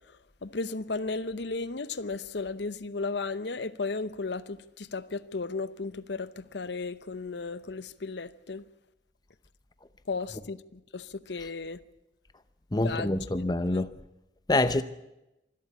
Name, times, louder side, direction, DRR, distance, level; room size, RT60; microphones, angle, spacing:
voice 1, 0.4-8.6 10.1-11.8 12.8-13.3 13.7-13.8, left 3 dB, 70° left, 0.8 m, -35 dB
voice 2, 12.7-13.9 14.5-14.8, left 2 dB, 20° left, 0.7 m, -26 dB
25.0 x 12.5 x 8.5 m
head